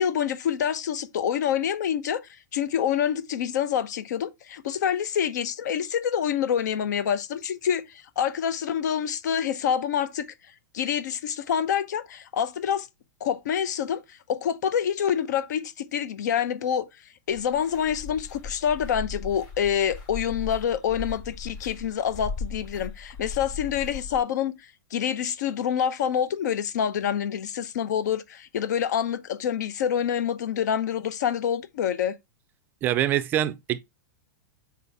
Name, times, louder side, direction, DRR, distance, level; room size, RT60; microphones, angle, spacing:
voice 1, 0.0-2.2 2.5-10.3 10.7-12.9 13.2-16.9 17.3-24.6 24.9-32.1, left 8 dB, 70° left, 0.9 m, -27 dB
sound 1, 17.3-24.2, left 4 dB, 35° left, 4.9 m, -38 dB
voice 2, 32.8-33.8, right 12 dB, 20° right, 0.4 m, -24 dB
6.8 x 4.7 x 3.4 m
supercardioid pair, 170°, 10 cm